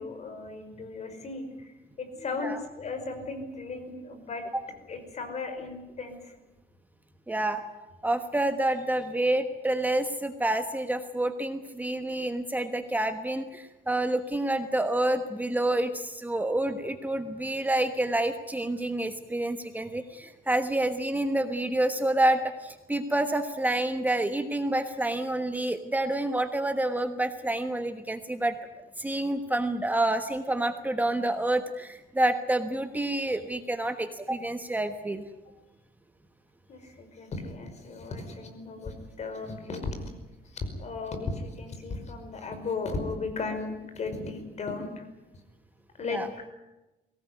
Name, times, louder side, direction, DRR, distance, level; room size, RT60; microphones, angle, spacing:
voice 1, 0.0-2.5 2.8-4.4 4.9-6.3 36.7-40.1 40.4-45.1 45.9-46.2, left 3 dB, 45° left, 7 dB, 5.3 m, -36 dB
voice 2, 7.3-7.6 8.0-28.6 29.0-35.2 46.1-46.3, right 1 dB, 10° right, 7 dB, 1.3 m, -28 dB
23.0 x 18.5 x 9.5 m, 1.0 s
cardioid pair, 135°, 16 cm